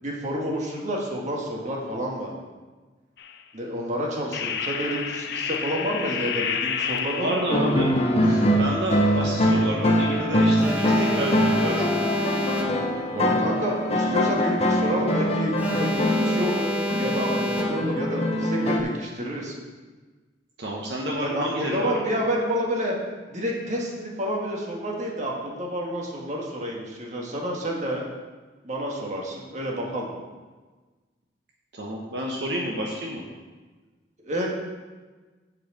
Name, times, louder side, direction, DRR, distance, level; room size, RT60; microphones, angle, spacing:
voice 1, 0.0-2.3 3.5-7.4 13.1-19.5 21.2-22.9 23.3-28.1 28.6-30.1 34.2-34.5, equal, 45° right, -2 dB, 1.7 m, -29 dB
sound 1, 3.2-3.4 4.3-7.7, left 7 dB, 65° left, 0.6 m, -30 dB
voice 2, 7.2-7.9 8.2-11.9 20.6-21.9 31.7-33.2, right 1 dB, 65° right, -2 dB, 1.1 m, -29 dB
sound 2, 7.5-18.8, equal, 35° left, 0.9 m, -23 dB
Alarm, 10.6-13.1 15.6-18.1, equal, 10° right, 1.0 m, -28 dB
7.9 x 4.7 x 7.3 m, 1.3 s
head